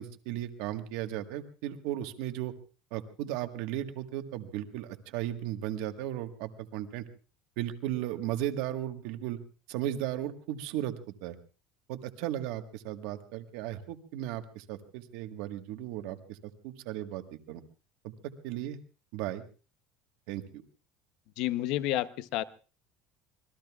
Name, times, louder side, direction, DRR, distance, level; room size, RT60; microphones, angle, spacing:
voice 1, 0.0-2.5 2.9-7.0 7.6-9.4 9.7-11.4 11.9-17.6 18.0-18.1 18.4-18.8 19.1-19.4 20.3-20.6, right 12 dB, 60° right, 7 dB, 1.4 m, -36 dB
voice 2, 21.4-22.4, left 14 dB, 50° left, 14 dB, 0.7 m, -30 dB
26.5 x 21.0 x 2.4 m, 0.37 s
cardioid pair, 180°, 0 cm